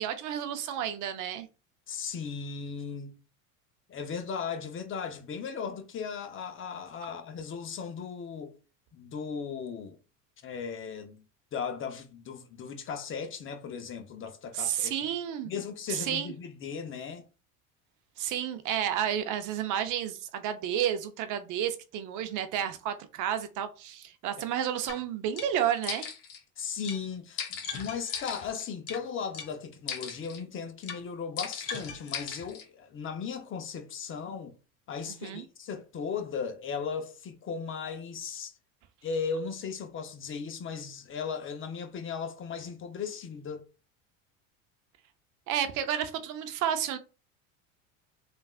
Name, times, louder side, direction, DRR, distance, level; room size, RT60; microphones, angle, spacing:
voice 1, 0.0-1.5 14.5-15.5 15.9-16.3 18.2-26.1 35.2-35.4 45.5-47.0, right 10 dB, 50° right, 0.5 m, -31 dB
voice 2, 1.9-3.1 3.9-8.5 8.9-10.0 10.4-11.2 11.5-15.1 15.4-17.2 26.6-34.6 34.9-38.5 39.0-43.6, left 6 dB, 30° left, 0.6 m, -37 dB
sound 1, 24.9-25.0 25.4-25.5 25.8-26.4 26.8-27.0 27.4-29.0 29.3-29.5 29.9-30.4 30.8-31.0 31.4-32.6, left 7 dB, 55° left, 1.1 m, -37 dB
3.3 x 2.4 x 2.3 m
supercardioid pair, 100°, 40 cm